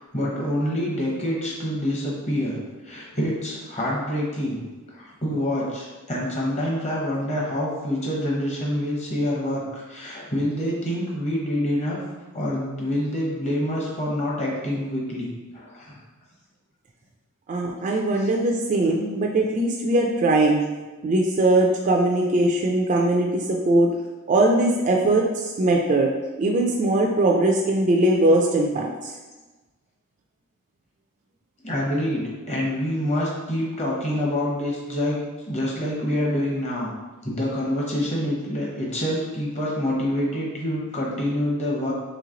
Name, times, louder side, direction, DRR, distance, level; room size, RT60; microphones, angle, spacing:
voice 1, 0.0-2.6 2.8-4.6 4.9-12.0 12.3-15.3 15.5-16.0 18.2-18.3 18.8-18.9 31.6-35.2 35.5-36.9 37.2-41.9, left 1 dB, 30° left, -4 dB, 0.9 m, -26 dB
voice 2, 17.5-20.6 21.0-23.9 24.3-26.1 26.4-29.1, right 2 dB, 35° right, 0 dB, 0.3 m, -20 dB
3.1 x 3.0 x 3.7 m, 1.2 s
head